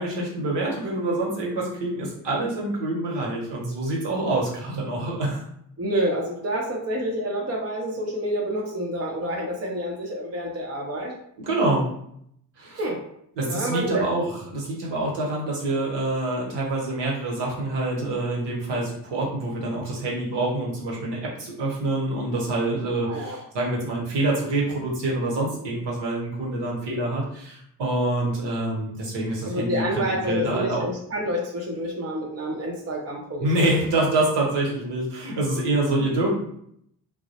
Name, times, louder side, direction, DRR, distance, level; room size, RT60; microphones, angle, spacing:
voice 1, 0.0-5.4 11.4-11.9 12.6-12.8 13.4-30.8 33.4-36.3, right 2 dB, 60° right, -3 dB, 1.0 m, -26 dB
voice 2, 5.8-11.1 12.8-13.0 13.5-14.1 23.0-23.4 29.4-33.8, equal, 30° right, -1 dB, 0.6 m, -28 dB
2.1 x 2.0 x 2.8 m, 0.71 s
hypercardioid pair, 40°, 46 cm